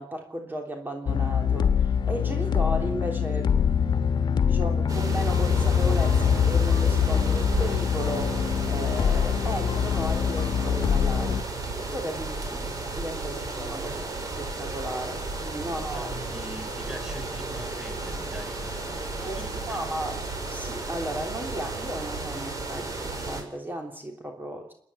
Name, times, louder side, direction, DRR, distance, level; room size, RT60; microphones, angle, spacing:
voice 1, 0.0-3.7 4.5-11.4 11.8-16.2 19.2-20.2 20.5-24.7, right 1 dB, 25° right, 2 dB, 3.4 m, -35 dB
sound 1, 1.1-11.4, left 7 dB, 60° left, 1.4 m, -24 dB
sound 2, 4.9-23.4, right 3 dB, 45° right, 4.7 m, -34 dB
voice 2, 15.7-20.0, equal, 5° right, 7 dB, 3.7 m, -43 dB
29.5 x 10.5 x 9.8 m, 0.68 s
cardioid pair, 100°, 9 cm